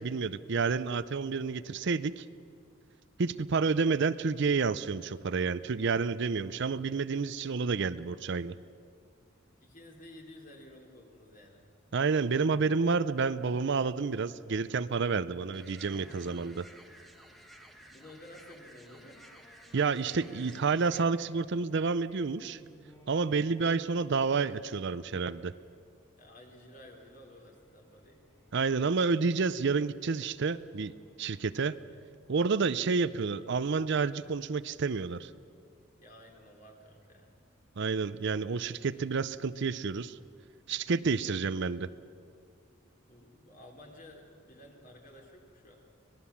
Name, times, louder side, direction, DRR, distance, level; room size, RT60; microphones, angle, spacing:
voice 1, 0.0-2.2 3.2-8.5 11.9-16.7 19.7-22.6 23.1-25.5 28.5-30.9 31.2-31.7 32.3-35.3 37.8-40.2 40.7-41.9, right 4 dB, 60° right, 15 dB, 0.6 m, -29 dB
voice 2, 9.6-11.7 17.7-19.2 26.2-28.2 36.0-37.3 43.1-45.8, left 1 dB, 40° left, 1 dB, 3.7 m, -53 dB
sound 1, 15.5-21.0, right 1 dB, ahead, 1.4 m, -55 dB
sound 2, 15.8-17.4 17.8-17.9 18.2-18.3 19.0-31.7, equal, 20° left, 5.4 m, -61 dB
25.0 x 19.5 x 7.2 m, 2.2 s
head